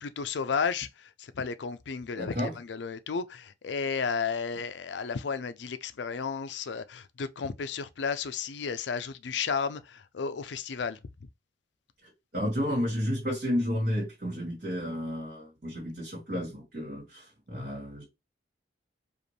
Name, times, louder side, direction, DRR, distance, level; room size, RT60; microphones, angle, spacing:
voice 1, 0.0-11.0, left 5 dB, 75° left, 0.5 m, -33 dB
voice 2, 2.2-2.5 12.3-18.0, equal, 50° right, 1.9 m, -31 dB
5.0 x 2.4 x 3.2 m
head